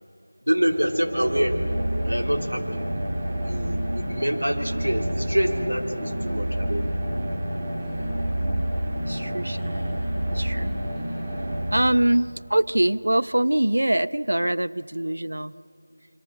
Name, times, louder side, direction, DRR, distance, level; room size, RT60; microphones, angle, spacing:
voice 1, 0.5-1.5 2.0-2.9 3.4-6.9, equal, 85° right, 3 dB, 3.3 m, -26 dB
sound 1, 0.6-12.5, equal, 25° right, 2.0 m, -29 dB
Laughter, 6.5-12.6, left 1 dB, 5° left, 6.4 m, -50 dB
voice 2, 9.0-9.7 10.3-10.7 11.7-15.5, right 1 dB, 70° right, 15 dB, 0.7 m, -23 dB
26.0 x 24.5 x 6.4 m, 2.6 s
figure-of-eight pair, 170°, 0 cm